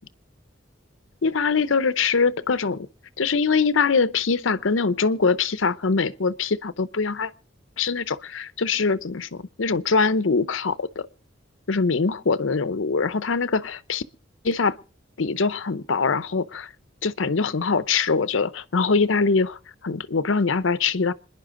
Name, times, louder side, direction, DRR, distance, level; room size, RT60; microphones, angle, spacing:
voice 1, 1.2-2.9 3.2-7.3 7.8-11.1 11.7-14.0 14.4-14.7 15.2-16.7 17.0-19.6 19.8-21.1, left 4 dB, 85° left, 0.7 m, -23 dB
27.0 x 10.5 x 3.8 m
head